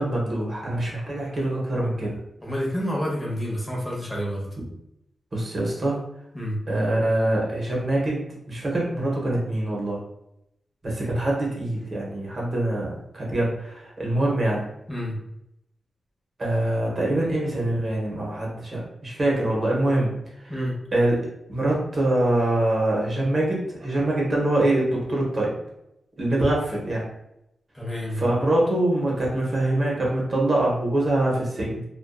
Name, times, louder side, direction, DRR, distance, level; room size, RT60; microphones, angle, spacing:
voice 1, 0.0-2.2 4.6-4.7 5.3-6.0 6.7-10.0 10.8-14.7 16.4-20.1 20.4-20.5 20.9-25.5 26.2-27.0 28.1-31.8, right 1 dB, 45° right, -3 dB, 0.9 m, -24 dB
voice 2, 2.4-4.5 6.3-6.6 14.9-15.1 20.5-20.7 27.7-28.2, equal, 15° left, -3 dB, 0.9 m, -28 dB
2.5 x 2.3 x 2.2 m, 0.82 s
wide cardioid pair, 100°, 0 cm